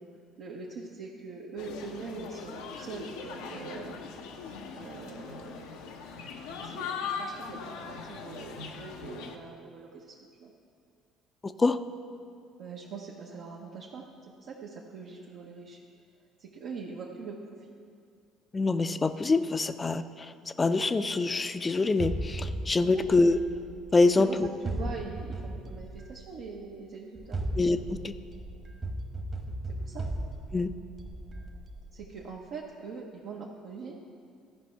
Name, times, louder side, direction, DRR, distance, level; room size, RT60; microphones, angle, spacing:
voice 1, 0.4-4.0 4.7-5.7 6.6-10.5 12.6-14.1 14.4-15.8 16.4-17.4 22.8-23.1 24.2-27.4 29.7-30.0 31.9-34.0, right 4 dB, 65° right, -3 dB, 0.9 m, -42 dB
sound 1, 1.6-9.4, left 5 dB, 80° left, 0.7 m, -40 dB
voice 2, 11.4-11.8 18.5-23.4 23.9-24.5 27.6-28.1 30.5-30.7, left 3 dB, 25° left, 11 dB, 0.5 m, -25 dB
sound 2, 22.0-24.1 24.6-26.5 27.1-32.2, right 1 dB, 35° right, 1.2 m, -37 dB
13.5 x 5.3 x 4.5 m, 2.4 s
hypercardioid pair, 65°, 0 cm